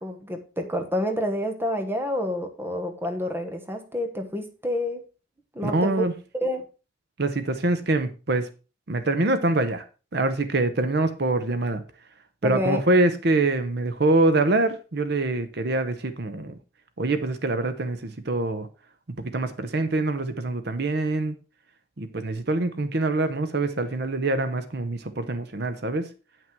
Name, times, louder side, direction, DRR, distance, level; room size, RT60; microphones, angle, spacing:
voice 1, 0.0-5.0 5.5-6.1 6.3-6.6 12.4-12.8, equal, 10° right, 1.1 m, -28 dB
voice 2, 5.6-6.1 7.2-8.5 8.9-9.8 10.1-11.8 12.4-16.6 17.0-18.7 19.2-21.3 22.0-26.1, right 2 dB, 55° right, 0.8 m, -24 dB
9.2 x 6.0 x 4.5 m
head